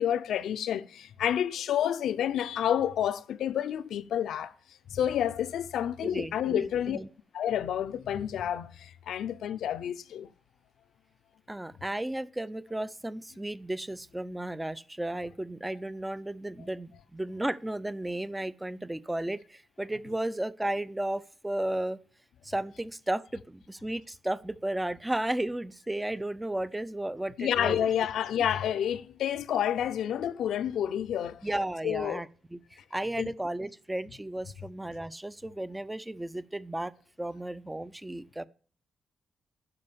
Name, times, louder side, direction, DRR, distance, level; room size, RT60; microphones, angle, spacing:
voice 1, 0.0-4.5 4.9-7.0 7.3-10.3 27.4-31.4 31.8-32.2 33.2-33.3, left 10 dB, 85° left, 0.6 m, -29 dB
voice 2, 6.0-7.1 11.5-22.0 22.4-27.9 31.4-36.9 37.2-38.5, right 1 dB, 10° right, 0.5 m, -34 dB
10.5 x 5.4 x 6.9 m
cardioid pair, 95°, 0 cm